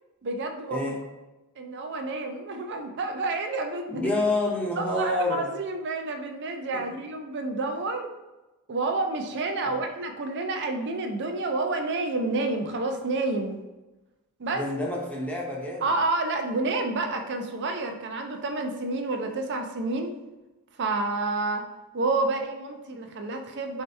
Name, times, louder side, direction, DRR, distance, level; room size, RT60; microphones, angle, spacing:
voice 1, 0.2-0.9 1.6-4.0 4.8-8.1 8.7-13.6 14.4-14.7 15.8-20.1 20.8-21.6 21.9-23.8, right 3 dB, 55° right, 5 dB, 0.5 m, -29 dB
voice 2, 3.9-5.5 6.7-6.8 9.6-9.8 14.6-15.9, left 2 dB, 5° left, -3 dB, 0.7 m, -28 dB
4.4 x 2.7 x 3.3 m, 1.1 s
head